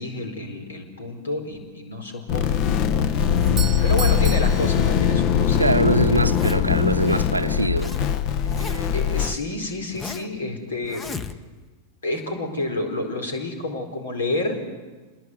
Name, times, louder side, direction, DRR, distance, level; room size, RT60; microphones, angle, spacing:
voice 1, 0.0-2.7 2.9-3.1 3.8-6.1 8.9-11.1 12.0-14.6, left 2 dB, 70° left, 4.4 m, -29 dB
sound 1, 2.3-9.3, left 8 dB, 40° left, 1.1 m, -21 dB
Doorbell, 3.3-5.5, right 8 dB, 25° right, 0.9 m, -36 dB
voice 2, 5.6-8.0 8.6-8.9, right 2 dB, 85° right, 0.8 m, -23 dB
Zipper (clothing), 6.1-6.8 7.4-8.0 8.3-9.0 9.5-10.4 10.8-11.7, left 5 dB, 20° left, 1.2 m, -37 dB
27.5 x 21.0 x 8.2 m
figure-of-eight pair, 90°, 0 cm